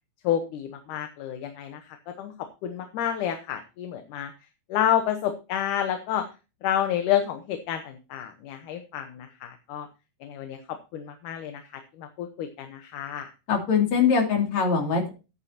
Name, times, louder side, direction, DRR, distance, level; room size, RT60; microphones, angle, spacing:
voice 1, 0.2-2.3 2.6-4.3 4.7-6.3 6.6-9.9 10.2-11.6 12.0-13.3, left 10 dB, 75° left, 7 dB, 2.5 m, -29 dB
voice 2, 13.5-15.1, left 6 dB, 60° left, 1 dB, 4.0 m, -22 dB
14.0 x 9.6 x 2.8 m, 0.30 s
omnidirectional pair, 3.8 m